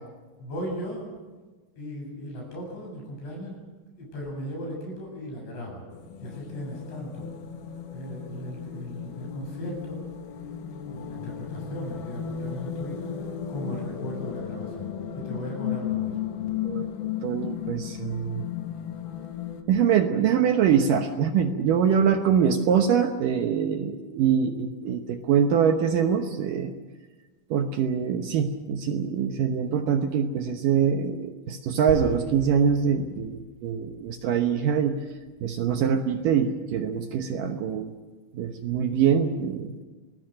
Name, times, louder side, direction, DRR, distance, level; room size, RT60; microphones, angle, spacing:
voice 1, 0.4-1.1 1.8-3.6 4.0-5.9 6.2-7.4 7.8-10.1 10.9-16.3, equal, 90° left, 0 dB, 10.0 m, -37 dB
sound 1, 5.9-19.6, left 9 dB, 60° left, 2.6 m, -35 dB
voice 2, 17.2-18.5 19.7-26.7 27.5-35.0 35.4-37.9 38.3-39.7, right 7 dB, 70° right, 6 dB, 2.2 m, -24 dB
sound 2, 31.9-36.3, right 1 dB, 30° right, 7.2 m, -40 dB
26.5 x 20.0 x 6.5 m, 1.3 s
omnidirectional pair, 4.9 m